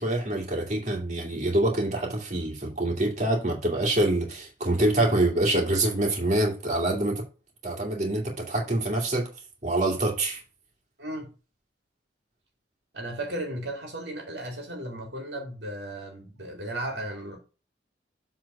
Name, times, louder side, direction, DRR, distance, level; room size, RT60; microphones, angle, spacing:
voice 1, 0.0-7.2 7.6-9.3 9.6-10.4, right 1 dB, 40° right, 2.3 m, -25 dB
voice 2, 11.0-11.3 12.9-17.4, right 1 dB, 70° right, 2.1 m, -35 dB
7.7 x 3.9 x 5.4 m
head